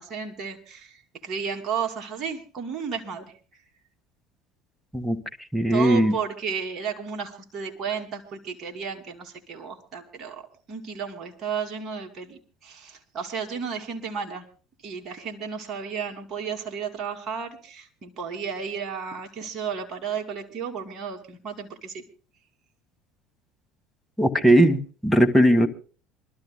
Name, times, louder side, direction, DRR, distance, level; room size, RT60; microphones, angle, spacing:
voice 1, 0.0-3.3 5.7-10.4 10.7-14.4 14.8-22.0, right 6 dB, 40° right, 2 dB, 2.6 m, -33 dB
voice 2, 5.5-6.1 24.2-25.7, right 1 dB, ahead, 8 dB, 1.7 m, -19 dB
27.5 x 13.0 x 2.2 m, 0.37 s
supercardioid pair, 90°, 0 cm